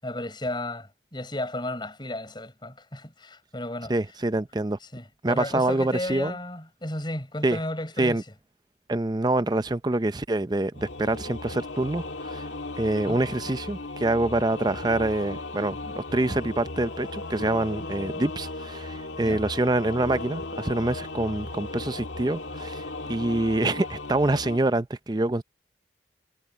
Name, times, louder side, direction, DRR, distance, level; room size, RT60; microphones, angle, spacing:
voice 1, 0.0-3.9 4.9-8.2 13.1-13.2 19.2-19.4, left 1 dB, 25° left, 6.8 m, -33 dB
voice 2, 3.9-4.8 5.2-6.3 7.4-7.6 8.0-8.2 8.9-12.4 12.8-22.8 23.1-25.4, right 2 dB, 25° right, 0.6 m, -26 dB
Singing / Musical instrument, 10.7-24.6, left 2 dB, 80° left, 2.2 m, -36 dB
head